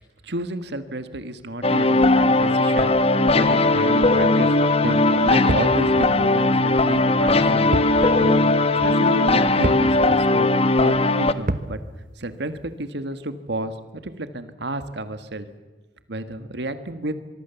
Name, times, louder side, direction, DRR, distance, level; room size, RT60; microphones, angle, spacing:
voice 1, 0.2-10.5 10.8-11.8 12.2-15.5 16.1-17.1, right 1 dB, 70° right, 10 dB, 1.7 m, -31 dB
sound 1, 1.6-11.3, left 2 dB, 35° left, 1.0 m, -18 dB
sound 2, 5.5-5.8 7.7-8.0 8.3-8.4 9.6-9.9 11.5-11.8, right 1 dB, 50° right, 1.2 m, -25 dB
24.5 x 23.5 x 7.1 m, 1.2 s
head